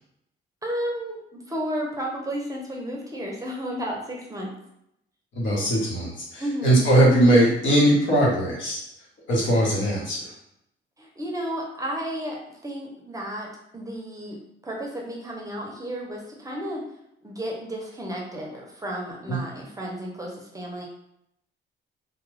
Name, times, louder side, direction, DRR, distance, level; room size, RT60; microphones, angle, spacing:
voice 1, 0.6-4.5 6.4-6.8 11.0-13.5 13.7-16.8 17.2-20.9, equal, 15° right, -1 dB, 0.6 m, -32 dB
voice 2, 5.4-8.8 9.3-10.2 19.3-19.4, right 1 dB, 70° left, -4 dB, 1.1 m, -20 dB
2.3 x 2.2 x 3.2 m, 0.78 s
cardioid pair, 90°, 20 cm